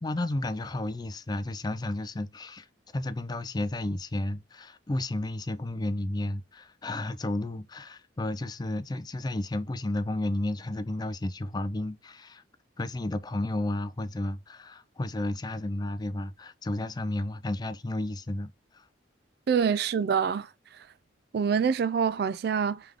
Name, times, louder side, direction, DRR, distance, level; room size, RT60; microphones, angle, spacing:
voice 1, 0.0-2.7 2.9-12.4 12.8-18.9, left 1 dB, 20° left, 0.4 m, -32 dB
voice 2, 19.5-20.5 21.3-23.0, right 6 dB, 55° right, 0.3 m, -26 dB
3.4 x 3.4 x 3.5 m
head